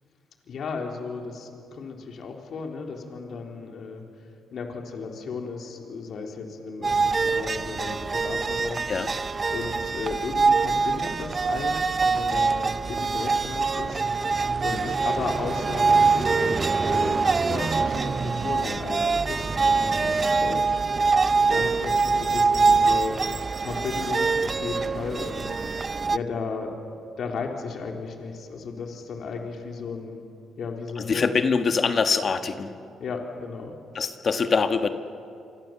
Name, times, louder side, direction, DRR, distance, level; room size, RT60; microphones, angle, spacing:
voice 1, 0.4-4.0 4.5-8.9 9.5-14.0 14.6-23.2 23.6-25.6 26.1-26.7 27.2-30.2 30.6-31.3 33.0-33.7, left 4 dB, 60° left, 2 dB, 3.6 m, -35 dB
sound 1, 6.8-26.2, right 4 dB, 35° right, 0.6 m, -24 dB
voice 2, 31.0-32.7 33.9-34.9, left 5 dB, 45° left, 8 dB, 1.5 m, -24 dB
27.0 x 25.5 x 7.6 m, 2.5 s
cardioid pair, 90°, 0 cm